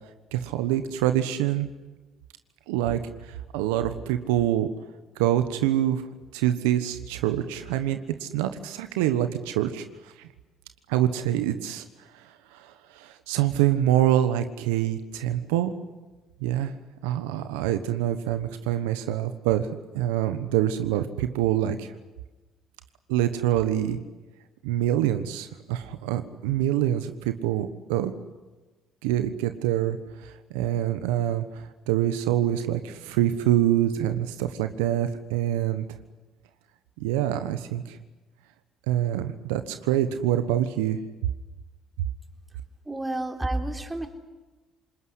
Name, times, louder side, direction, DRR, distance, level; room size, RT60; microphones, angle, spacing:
voice 1, 0.3-1.7 2.7-3.0 3.5-4.7 5.2-6.0 6.3-9.8 10.9-11.8 13.0-15.8 16.4-16.7 17.0-19.7 19.9-21.9 23.1-24.0 24.6-28.1 29.0-30.0 30.5-31.4 31.9-35.8 37.0-37.8 38.9-41.0, right 12 dB, 90° right, 9 dB, 1.2 m, -25 dB
voice 2, 42.9-44.1, right 1 dB, 15° right, 4 dB, 3.5 m, -30 dB
27.0 x 20.5 x 9.8 m, 1.2 s
supercardioid pair, 70°, 0 cm